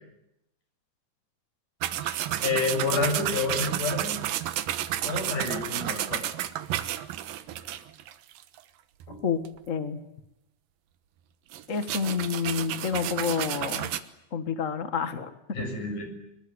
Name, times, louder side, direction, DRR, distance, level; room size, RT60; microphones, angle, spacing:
sound 1, 1.8-8.6 9.0-9.1 9.4-9.6 11.5-14.0, right 12 dB, 85° right, 2.9 m, -31 dB
voice 1, 2.4-4.2 5.1-6.2 15.5-16.1, left 3 dB, 65° left, 5 dB, 8.2 m, -29 dB
voice 2, 9.7-10.0 11.7-13.9 14.3-15.3, left 6 dB, 35° left, 10 dB, 1.3 m, -29 dB
24.5 x 22.5 x 9.7 m, 0.86 s
omnidirectional pair, 3.9 m